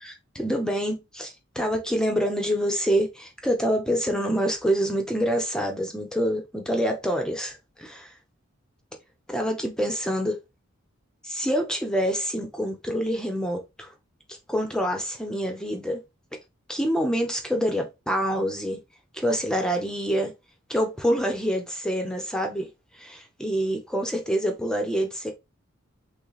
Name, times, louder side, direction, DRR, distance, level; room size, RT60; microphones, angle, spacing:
voice 1, 0.0-7.9 9.3-10.4 11.2-13.9 14.3-16.0 16.7-18.8 19.1-20.3 20.7-22.7 22.9-25.3, equal, 5° left, 0.7 m, -26 dB
5.8 x 2.2 x 4.0 m
head